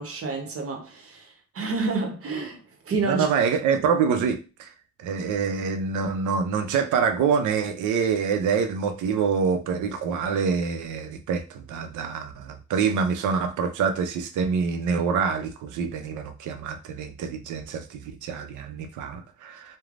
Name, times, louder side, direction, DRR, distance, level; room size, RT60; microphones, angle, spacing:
voice 1, 0.0-3.3, right 3 dB, 50° right, 0.9 m, -29 dB
voice 2, 3.1-4.7 5.0-19.8, right 6 dB, 80° right, 0.6 m, -26 dB
3.1 x 2.2 x 2.5 m
cardioid pair, 90°, 30 cm